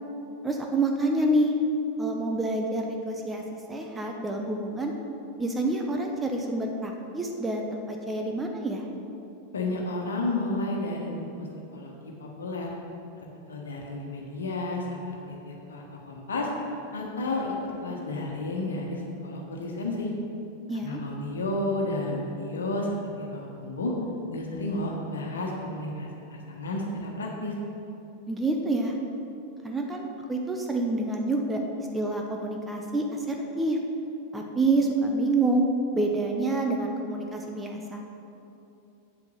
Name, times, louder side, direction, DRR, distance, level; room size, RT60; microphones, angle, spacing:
voice 1, 0.4-1.5 2.0-4.9 5.4-8.8 20.7-21.0 28.3-29.0 29.6-31.6 31.9-33.8 34.3-35.6 35.9-38.0, right 2 dB, 10° right, 1 dB, 0.9 m, -27 dB
voice 2, 9.5-11.5 11.7-11.9 12.2-12.8 13.5-16.5 16.9-17.5 17.8-20.1 20.7-22.9 23.2-23.9 24.3-27.5, left 2 dB, 70° left, -1 dB, 1.5 m, -32 dB
8.4 x 7.9 x 5.5 m, 2.8 s
figure-of-eight pair, 90°, 0 cm